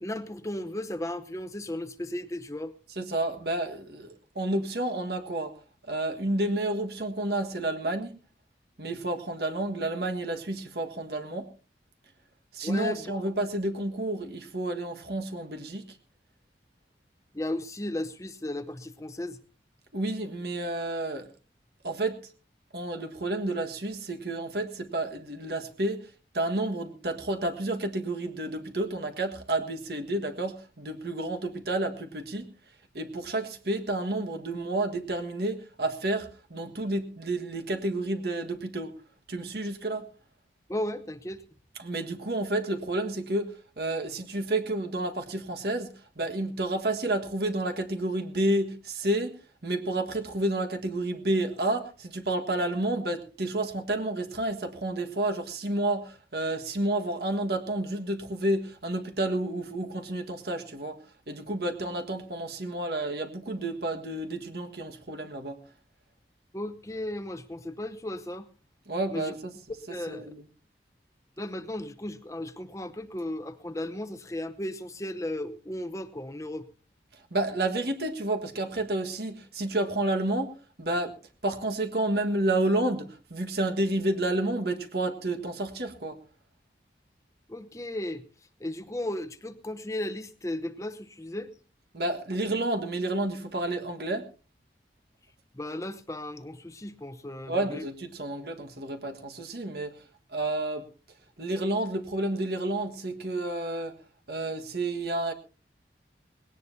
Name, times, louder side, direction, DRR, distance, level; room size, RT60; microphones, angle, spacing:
voice 1, 0.0-2.7 12.6-13.2 17.3-19.4 40.7-41.4 66.5-68.5 69.1-69.3 69.9-70.3 71.4-76.7 87.5-88.2 88.6-91.5 95.5-97.8, left 1 dB, 15° left, 10 dB, 0.8 m, -35 dB
voice 2, 2.9-5.6 5.8-8.2 8.8-11.5 12.5-16.0 19.9-21.3 21.8-22.3 22.7-32.5 32.9-39.0 39.3-40.1 41.8-65.6 68.9-69.5 70.1-70.4 77.3-80.5 80.8-81.2 81.4-86.2 91.9-94.3 97.5-100.0 100.3-100.9 101.4-104.0 104.3-105.3, right 1 dB, 60° right, 5 dB, 1.6 m, -30 dB
20.0 x 17.5 x 2.7 m, 0.35 s
head